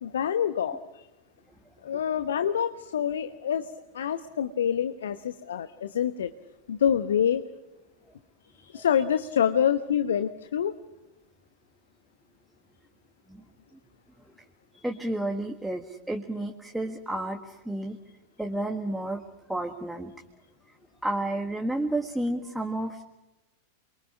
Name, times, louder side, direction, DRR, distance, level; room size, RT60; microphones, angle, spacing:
voice 1, 0.0-1.1 1.8-3.7 3.9-6.3 6.7-7.4 8.5-10.7, left 8 dB, 65° left, 11 dB, 1.0 m, -26 dB
voice 2, 14.7-18.0 18.4-19.2 19.5-20.1 21.0-23.0, right 1 dB, 5° right, 3 dB, 1.7 m, -31 dB
29.0 x 23.5 x 5.9 m, 1.0 s
figure-of-eight pair, 90°, 0 cm